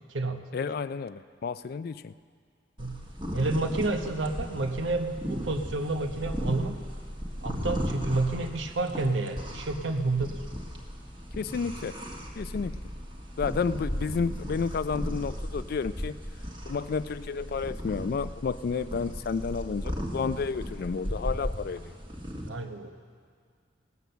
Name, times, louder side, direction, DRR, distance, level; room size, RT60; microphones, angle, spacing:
voice 1, 0.5-2.1 11.3-12.0 12.4-12.7 13.4-16.2 16.7-21.9, left 5 dB, 50° left, 15 dB, 0.3 m, -31 dB
sound 1, 2.8-22.5, equal, 25° right, 1.5 m, -36 dB
voice 2, 3.3-6.8 7.4-10.4 22.4-22.9, right 2 dB, 70° right, 6 dB, 0.9 m, -29 dB
18.5 x 8.3 x 6.8 m, 2.1 s
head